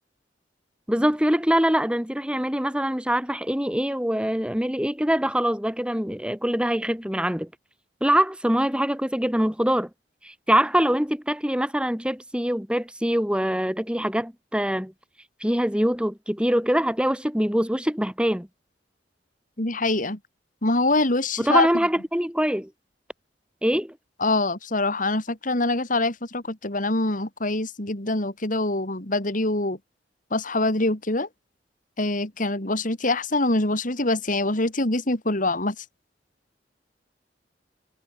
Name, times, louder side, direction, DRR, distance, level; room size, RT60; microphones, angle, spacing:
voice 1, 0.9-7.5 8.0-9.9 10.2-14.9 15.4-18.5 21.4-22.7 23.6-23.9, equal, 5° right, 3.2 m, -24 dB
voice 2, 19.6-20.2 20.6-21.7 24.2-29.8 30.3-31.3 32.0-35.8, left 2 dB, 45° left, 3.7 m, -24 dB
head